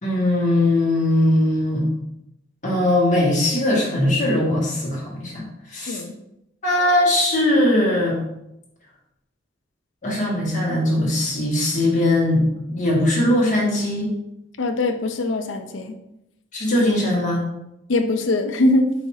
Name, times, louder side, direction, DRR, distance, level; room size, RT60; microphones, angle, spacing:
voice 1, 0.0-1.8 2.6-5.4 5.7-6.0 6.6-8.2 10.0-14.1 16.5-17.4, left 1 dB, 40° left, -4 dB, 1.5 m, -20 dB
voice 2, 14.6-16.0 17.9-18.9, left 2 dB, 70° left, 7 dB, 0.5 m, -21 dB
4.1 x 2.8 x 4.6 m, 0.83 s
head